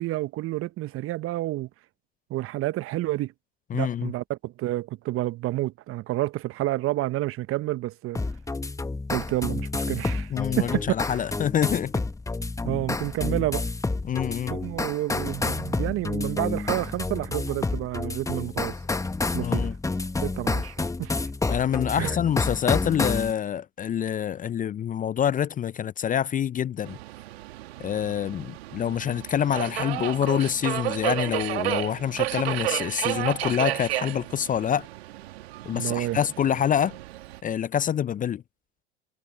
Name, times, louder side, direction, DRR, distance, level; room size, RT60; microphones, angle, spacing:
voice 1, 0.0-1.7 2.3-3.3 3.7-8.2 9.1-10.3 10.6-10.8 11.1-11.2 12.6-13.6 14.5-18.8 19.3-19.7 20.2-21.1 21.9-22.2 35.7-36.2, right 16 dB, 40° right, 1.1 m, -29 dB
voice 2, 3.7-4.1 10.3-11.9 14.0-14.6 19.4-19.7 21.5-27.0 27.8-34.9 35.6-37.0 37.4-38.4, left 9 dB, 25° left, 0.7 m, -26 dB
sound 1, 8.2-23.3, left 3 dB, 10° left, 1.4 m, -29 dB
Subway metro underground, 26.8-37.4, right 17 dB, 70° right, 2.3 m, -32 dB
figure-of-eight pair, 75°, 33 cm